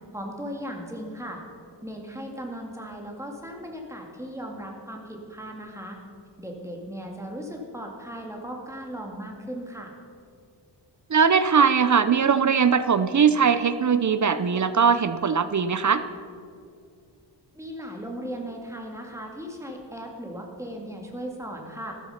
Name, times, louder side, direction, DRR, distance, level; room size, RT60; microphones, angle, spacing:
voice 1, 0.1-1.4 1.8-6.0 6.4-9.9 17.5-21.9, equal, 5° right, 1 dB, 2.3 m, -37 dB
voice 2, 11.1-16.1, right 6 dB, 45° right, 12 dB, 0.6 m, -20 dB
14.0 x 13.0 x 5.8 m, 2.3 s
wide cardioid pair, 120°, 43 cm